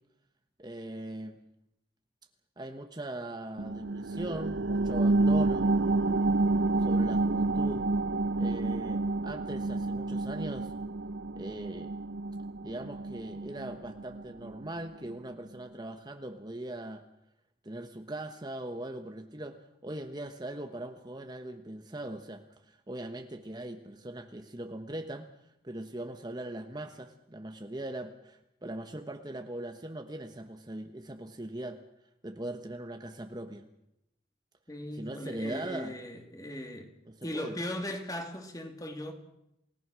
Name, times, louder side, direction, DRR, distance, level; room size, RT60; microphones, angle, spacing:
voice 1, 0.6-1.4 2.6-5.7 6.8-7.9 8.4-10.7 11.4-12.0 12.6-17.0 17.6-19.6 19.8-25.3 25.6-31.8 32.2-33.6 34.9-35.9 37.0-37.6, right 1 dB, 20° right, 1.2 m, -40 dB
sound 1, 3.6-14.7 15.1-15.2, right 2 dB, 80° right, 0.8 m, -29 dB
voice 2, 34.7-36.9 37.2-39.1, left 1 dB, 20° left, 2.5 m, -38 dB
28.5 x 18.0 x 6.3 m
head